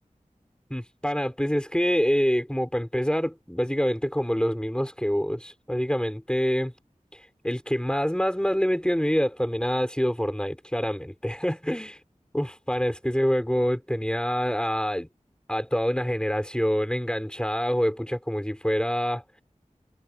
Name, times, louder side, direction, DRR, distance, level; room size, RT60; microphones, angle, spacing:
voice 1, 0.7-6.7 7.4-12.0 12.3-15.1 15.5-19.2, equal, 5° left, 5.0 m, -26 dB
wide cardioid pair, 50°, 13 cm